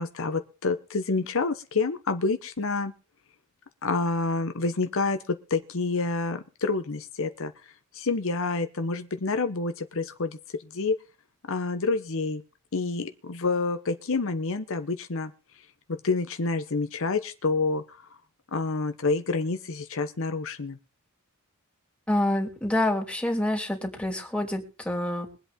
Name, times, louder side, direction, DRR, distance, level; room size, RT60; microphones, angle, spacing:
voice 1, 0.0-2.9 3.8-10.4 10.7-10.9 11.5-12.4 12.7-15.3 15.9-18.0 18.5-20.8, left 3 dB, 65° left, 9 dB, 0.9 m, -28 dB
voice 2, 22.1-25.3, left 1 dB, 5° left, 1 dB, 2.9 m, -27 dB
22.5 x 8.2 x 3.7 m, 0.34 s
head